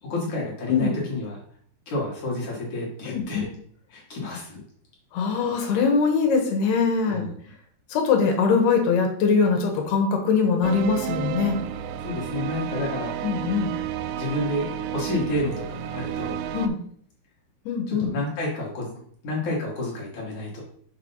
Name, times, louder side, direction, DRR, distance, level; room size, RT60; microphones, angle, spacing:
voice 1, 0.0-1.4 1.9-3.5 3.9-4.6 7.0-7.3 12.0-13.1 14.2-16.4 17.9-20.6, left 2 dB, 60° left, -3 dB, 2.3 m, -30 dB
voice 2, 3.1-3.4 5.1-7.2 7.9-11.6 13.2-13.7 16.5-16.8 17.7-18.1, left 5 dB, 75° left, 3 dB, 3.0 m, -22 dB
sound 1, 10.6-16.7, right 10 dB, 85° right, 2.6 m, -31 dB
6.5 x 3.3 x 5.4 m, 0.62 s
omnidirectional pair, 4.6 m